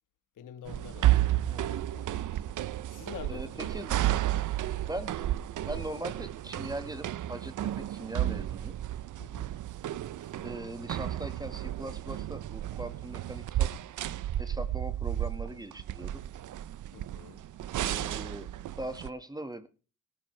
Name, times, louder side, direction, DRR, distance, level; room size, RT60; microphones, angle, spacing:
voice 1, 0.4-2.1 2.9-3.7 9.2-9.5 10.2-10.4 16.9-17.4, left 9 dB, 75° left, 1.4 m, -47 dB
sound 1, 0.7-19.1, right 13 dB, 70° right, 0.6 m, -32 dB
voice 2, 3.3-4.0 4.9-5.3 5.6-8.8 10.4-13.7 14.4-16.2 17.8-19.7, right 1 dB, 10° right, 1.6 m, -40 dB
18.0 x 14.5 x 3.3 m
cardioid pair, 100°, 31 cm